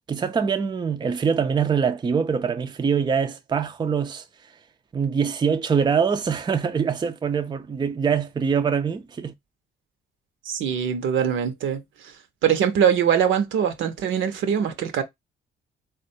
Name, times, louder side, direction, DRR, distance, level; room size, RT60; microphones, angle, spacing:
voice 1, 0.1-4.2 4.9-9.3, right 6 dB, 20° right, 0.4 m, -24 dB
voice 2, 10.4-12.1 12.4-15.0, right 8 dB, 75° right, 0.7 m, -22 dB
3.6 x 2.2 x 2.6 m
cardioid pair, 90°, 20 cm